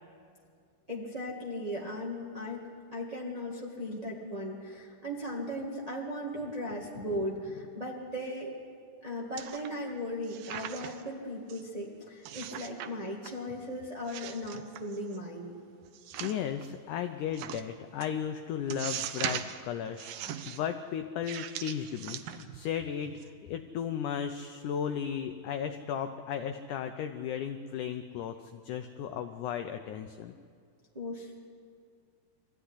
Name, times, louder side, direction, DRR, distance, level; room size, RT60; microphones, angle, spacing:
voice 1, 0.9-8.5 9.0-15.5 30.9-31.4, equal, 20° right, -3 dB, 0.9 m, -37 dB
sound 1, 9.4-9.9 10.2-11.1 11.5-11.6 12.3-12.9 13.2-13.7 14.1-15.2 15.9-16.7 17.3-17.6 18.0-18.1 18.7-19.6 20.0-20.6 21.2-22.7 23.1-23.2, right 10 dB, 80° right, 2.6 m, -39 dB
voice 2, 16.2-30.3, left 8 dB, 75° left, 7 dB, 1.9 m, -35 dB
22.5 x 15.0 x 9.8 m, 2.2 s
omnidirectional pair, 4.3 m